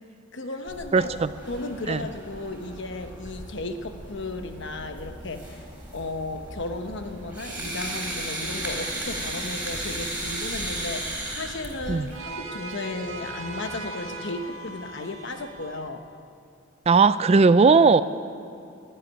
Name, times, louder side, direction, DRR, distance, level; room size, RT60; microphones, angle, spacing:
voice 1, 0.3-1.1 1.5-5.6 5.9-16.0, left 2 dB, 60° left, 7 dB, 1.1 m, -34 dB
sound 1, 0.7-12.2, right 1 dB, 10° right, 3.5 m, -35 dB
voice 2, 0.9-1.3 1.9-2.0 11.9-12.1 16.9-18.0, right 4 dB, 30° right, 15 dB, 0.3 m, -17 dB
sound 2, 7.1-15.9, right 2 dB, 85° right, 1.7 m, -42 dB
13.0 x 11.0 x 9.8 m, 2.5 s
head